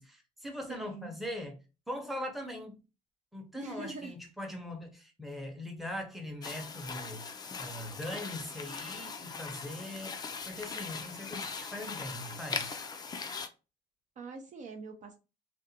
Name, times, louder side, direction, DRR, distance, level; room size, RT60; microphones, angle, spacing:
voice 1, 0.0-2.8 3.3-12.8, left 1 dB, ahead, 0.7 m, -41 dB
voice 2, 0.7-1.1 3.5-4.2 14.2-15.2, right 4 dB, 45° right, 0.5 m, -43 dB
sound 1, 6.4-13.5, left 5 dB, 25° left, 0.4 m, -40 dB
2.5 x 2.2 x 2.7 m
cardioid pair, 110°, 17 cm